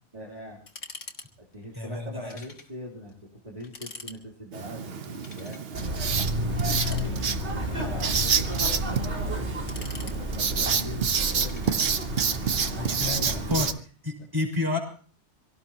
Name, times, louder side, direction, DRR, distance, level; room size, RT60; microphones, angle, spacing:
voice 1, 0.1-0.6 1.4-5.6 6.3-11.9 12.9-13.7, equal, 35° right, -4 dB, 3.4 m, -41 dB
sound 1, 0.7-1.3 1.5-1.6 2.3-2.7 3.1-3.2 3.6-4.2 5.1-5.7 6.6-7.4 8.0-8.8 9.4-10.6 11.3-12.0, left 3 dB, 70° left, 1.9 m, -44 dB
voice 2, 1.7-2.3 12.7-13.7 14.0-14.8, left 3 dB, 20° right, 2 dB, 5.2 m, -30 dB
Writing, 4.5-13.7, right 6 dB, 60° right, 1.1 m, -29 dB
sound 2, 5.7-13.6, equal, 75° right, 2.9 m, -31 dB
25.0 x 17.5 x 2.9 m, 0.41 s
omnidirectional pair, 1.2 m